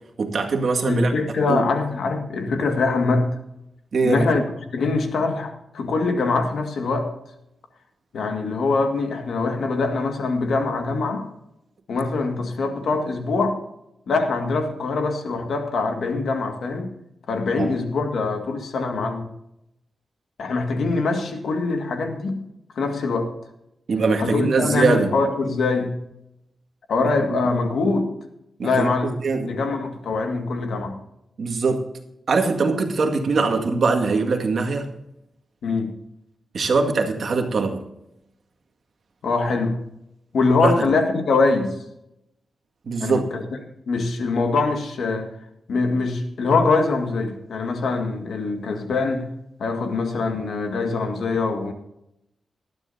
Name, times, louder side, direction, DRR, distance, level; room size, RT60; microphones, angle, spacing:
voice 1, 0.2-1.1 1.5-1.6 3.9-4.3 17.6-17.7 23.9-25.1 27.3-27.4 28.6-29.5 31.4-31.9 32.3-34.9 36.5-37.9 40.6-40.7 42.9-43.3, right 4 dB, 55° right, 3 dB, 2.0 m, -22 dB
voice 2, 0.8-3.3 4.0-4.4 4.7-7.1 8.1-11.3 11.9-13.6 14.1-16.9 17.3-19.3 20.4-22.4 22.8-23.3 24.2-26.0 26.9-28.1 28.6-29.1 29.4-31.0 35.6-36.0 39.2-39.8 40.3-41.7 43.0-43.5 43.9-45.3 45.7-49.3 49.6-51.7, left 3 dB, 80° left, 5 dB, 1.9 m, -23 dB
19.0 x 12.5 x 2.8 m, 0.83 s
wide cardioid pair, 160°, 0 cm